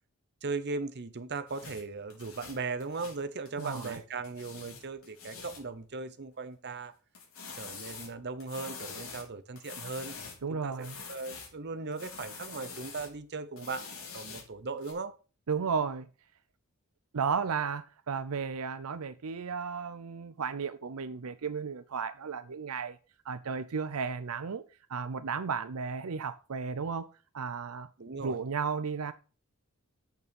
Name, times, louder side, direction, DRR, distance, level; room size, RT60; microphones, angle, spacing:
voice 1, 0.4-6.9 7.6-10.2 10.5-15.1 28.0-28.4, right 4 dB, 50° right, 0.9 m, -38 dB
sound 1, 1.5-4.0 4.2-5.7 7.1-10.4 10.7-11.6 11.9-13.1 13.6-14.9, left 5 dB, 70° left, 4.1 m, -45 dB
voice 2, 3.6-4.0 10.4-11.0 15.5-16.1 17.1-23.0 23.3-27.1 27.3-27.9 28.2-29.1, right 5 dB, 80° right, 0.6 m, -34 dB
8.3 x 6.8 x 5.3 m
head